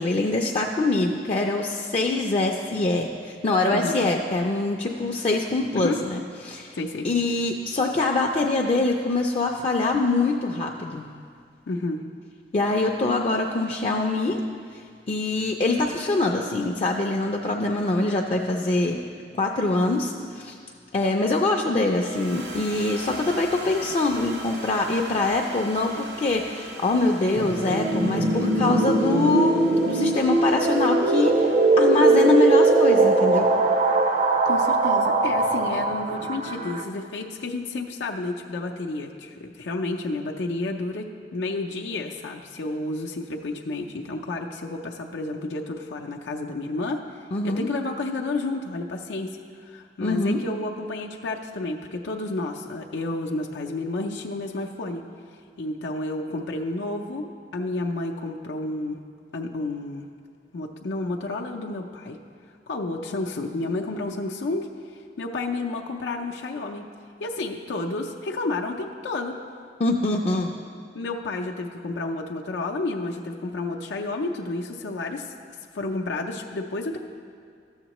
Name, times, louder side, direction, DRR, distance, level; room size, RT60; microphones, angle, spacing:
voice 1, 0.0-6.7 7.0-11.0 12.5-14.4 15.1-19.0 19.4-20.6 20.9-29.6 29.9-33.5 47.3-47.7 50.0-50.4 69.8-70.5, left 2 dB, 35° left, 1 dB, 0.4 m, -24 dB
voice 2, 6.7-7.1 11.7-12.0 34.4-47.0 47.4-49.4 49.6-55.0 55.6-59.0 59.3-60.0 60.5-62.2 62.7-64.7 65.2-66.8 67.2-69.4 70.9-75.3 75.7-77.0, left 2 dB, 85° left, 1 dB, 0.5 m, -31 dB
sound 1, 21.8-36.3, right 1 dB, 85° right, 2.3 m, -42 dB
sound 2, 27.4-36.8, right 2 dB, 45° right, 0.5 m, -21 dB
13.0 x 7.2 x 3.0 m, 2.2 s
head